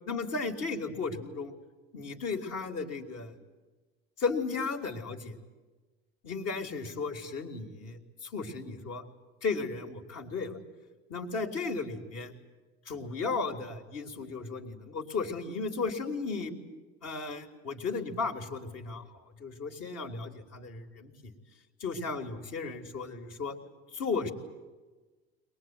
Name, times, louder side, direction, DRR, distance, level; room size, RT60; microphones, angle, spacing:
voice 1, 0.1-1.5 1.9-3.4 4.2-5.4 6.2-9.0 9.4-10.6 11.1-12.3 12.9-16.5 17.0-21.3 21.8-23.6 23.9-24.3, left 4 dB, 55° left, 3 dB, 3.7 m, -35 dB
23.0 x 20.5 x 9.7 m, 1.2 s
supercardioid pair, 85°, 30 cm